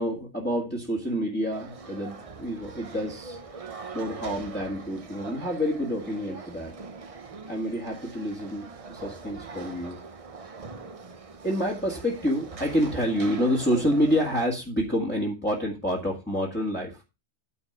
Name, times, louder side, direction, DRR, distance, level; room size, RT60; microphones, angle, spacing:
voice 1, 0.0-3.4 3.9-6.7 7.5-10.0 11.4-17.0, equal, 10° left, -4 dB, 1.8 m, -28 dB
sound 1, 1.5-14.5, right 4 dB, 35° right, 0.8 m, -42 dB
9.4 x 4.3 x 6.7 m, 0.28 s
omnidirectional pair, 1.2 m